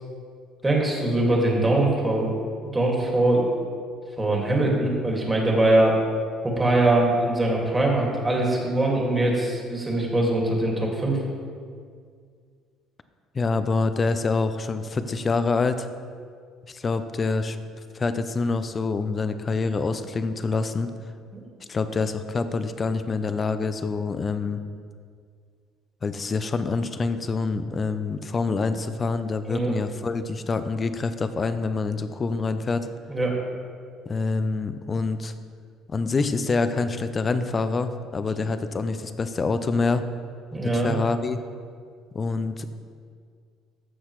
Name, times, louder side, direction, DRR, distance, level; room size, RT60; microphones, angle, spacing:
voice 1, 0.6-2.4 2.7-3.5 4.2-6.0 6.4-11.2 21.3-21.4 29.5-29.7 33.1-33.3 40.5-41.0, right 2 dB, 15° right, -2 dB, 2.1 m, -22 dB
voice 2, 13.3-15.9 16.7-17.6 17.9-20.9 21.7-24.6 26.0-32.9 34.1-35.3 35.9-40.0 40.7-41.4 42.1-42.7, left 4 dB, 30° left, 10 dB, 0.5 m, -26 dB
14.0 x 6.4 x 3.1 m, 2.1 s
cardioid pair, 110°, 0 cm